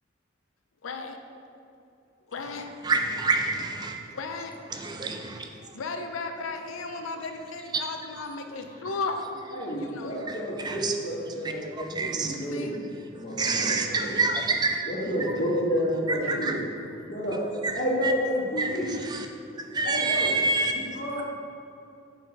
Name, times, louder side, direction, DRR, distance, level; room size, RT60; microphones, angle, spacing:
voice 1, 0.8-1.2 2.3-2.7 4.1-4.6 5.7-9.3 9.8-10.5 12.5-12.7 16.2-16.4, left 4 dB, 85° left, 5 dB, 0.6 m, -35 dB
voice 2, 2.8-4.0 4.7-5.5 7.7-7.8 10.3-10.9 11.7-12.4 13.4-14.8 16.1-16.5 17.6-18.1 18.6-19.3 19.7-20.8, right 3 dB, 20° right, 4 dB, 0.3 m, -27 dB
voice 3, 9.5-12.8 13.1-14.2 14.8-16.6 17.1-17.4 17.7-18.9 19.8-20.3 20.7-21.2, equal, 55° left, -11 dB, 1.5 m, -30 dB
5.5 x 4.7 x 4.8 m, 2.6 s
head